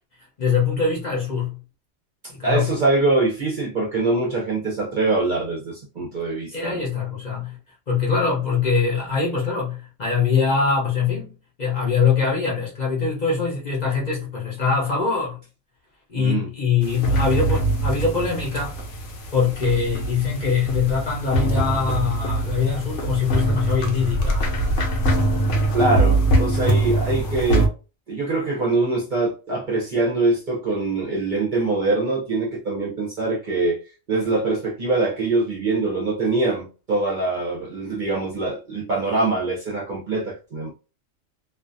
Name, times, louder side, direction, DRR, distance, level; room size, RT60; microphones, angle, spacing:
voice 1, 0.4-1.6 2.3-2.7 6.5-7.6 7.9-11.3 11.6-15.4 16.1-18.8 19.3-24.5, left 5 dB, 45° left, 0.7 m, -23 dB
voice 2, 2.4-6.8 16.1-16.5 25.7-27.7 28.1-33.8 34.1-40.7, right 3 dB, 50° right, 0.6 m, -23 dB
sound 1, 16.8-27.7, right 2 dB, 75° left, 1.0 m, -23 dB
2.4 x 2.4 x 2.5 m
omnidirectional pair, 1.3 m